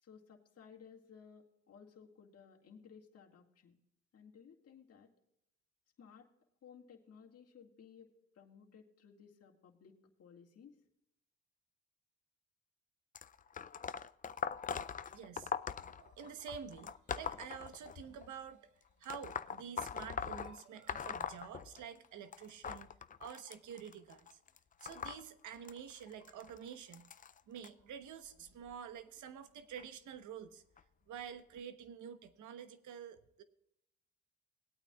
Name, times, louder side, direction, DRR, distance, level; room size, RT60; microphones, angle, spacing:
voice 1, 0.0-3.7 4.1-5.1 6.0-6.3 6.6-10.7, left 6 dB, 55° left, 1 dB, 2.1 m, -58 dB
sound 1, 13.1-18.3 19.0-22.1 22.3-27.7 28.5-28.7 29.8-29.9 30.8-30.9 31.6-31.7, left 7 dB, 25° left, 0.4 m, -42 dB
voice 2, 15.1-24.4 24.8-27.1 27.5-30.6 31.1-33.4, right 8 dB, 75° right, 11 dB, 1.1 m, -49 dB
20.0 x 9.0 x 2.4 m, 0.80 s
cardioid pair, 90°, 30 cm